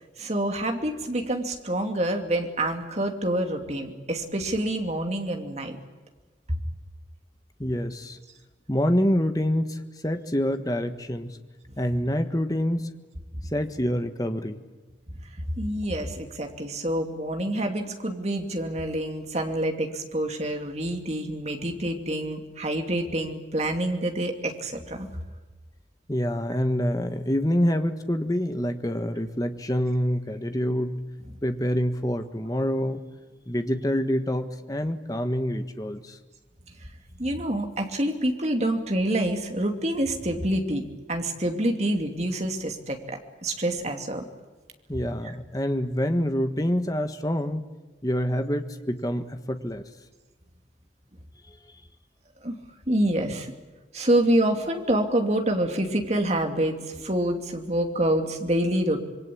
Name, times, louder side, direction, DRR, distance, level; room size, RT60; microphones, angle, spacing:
voice 1, 0.2-5.8 6.5-6.6 15.6-25.1 37.2-40.8 41.1-44.2 45.2-45.3 52.4-52.6 52.9-53.5 53.9-59.1, right 1 dB, 35° right, 4 dB, 2.7 m, -27 dB
voice 2, 7.6-8.2 8.7-11.4 11.8-12.9 13.5-14.6 26.1-31.0 31.4-33.0 33.5-36.2 44.9-47.7 48.0-49.8, equal, 20° left, 8 dB, 1.4 m, -26 dB
26.5 x 22.0 x 8.6 m, 1.3 s
head